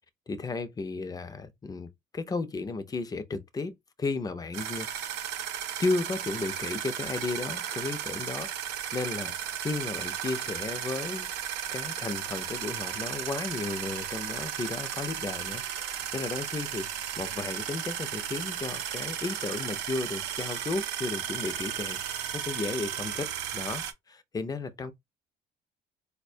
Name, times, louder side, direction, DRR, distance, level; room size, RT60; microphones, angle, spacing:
voice 1, 0.3-1.9 2.1-5.2 5.8-9.3 9.6-11.3 11.7-24.9, left 3 dB, 20° left, 0.5 m, -34 dB
sound 1, 4.5-23.9, right 9 dB, 85° right, 0.6 m, -35 dB
4.1 x 2.2 x 2.5 m
cardioid pair, 110°, 17 cm